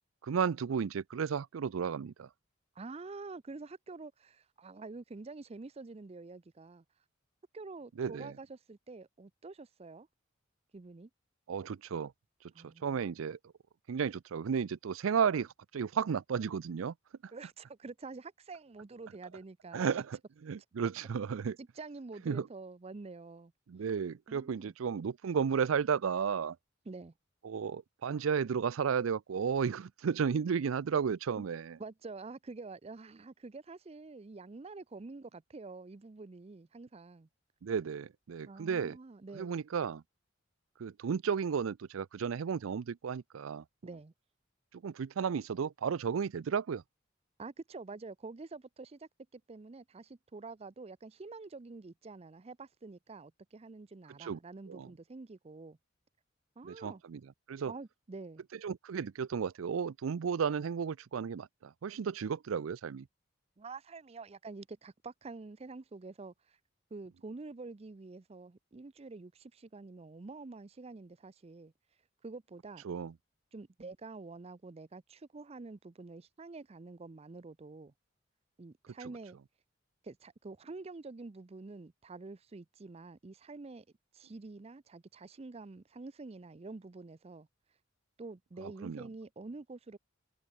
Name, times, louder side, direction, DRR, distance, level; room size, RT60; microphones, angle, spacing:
voice 1, 0.2-2.3 8.0-8.3 11.5-12.1 12.8-13.4 13.9-16.9 19.7-20.0 20.4-21.6 22.3-22.5 23.7-26.6 27.4-31.8 37.6-39.0 39.3-40.0 40.8-43.6 44.8-46.8 54.2-54.4 54.7-54.9 56.6-57.2 57.5-57.7 58.6-63.1 72.8-73.1 88.6-89.0, right 6 dB, 85° right, 0.4 m, -33 dB
voice 2, 2.8-6.8 7.5-10.1 10.7-11.1 12.5-13.0 17.3-19.9 21.6-23.5 24.3-24.7 26.9-27.1 31.4-31.5 31.8-37.3 38.5-39.6 43.8-44.1 47.4-55.8 56.6-57.0 57.7-58.4 63.6-66.6 66.9-71.7 72.2-72.8 73.5-77.9 78.6-79.4 80.0-83.8 84.1-87.5 88.2-90.0, right 3 dB, 30° right, 0.5 m, -47 dB
head